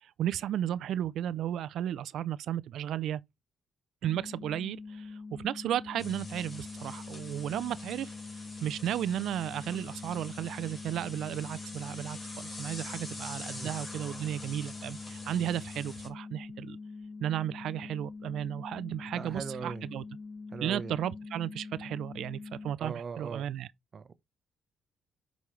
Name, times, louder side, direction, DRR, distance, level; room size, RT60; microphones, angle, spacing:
voice 1, 0.0-3.2 4.0-8.1 8.6-16.8 17.2-20.0 20.6-23.7, right 11 dB, 75° right, 0.4 m, -34 dB
sound 1, 4.0-22.7, left 4 dB, 15° left, 1.1 m, -44 dB
sound 2, 6.0-16.1, left 2 dB, 30° left, 3.4 m, -45 dB
voice 2, 19.1-19.9 20.5-20.9 22.8-23.5 23.9-24.1, right 5 dB, 45° right, 0.8 m, -39 dB
8.3 x 5.2 x 3.2 m
cardioid pair, 90°, 0 cm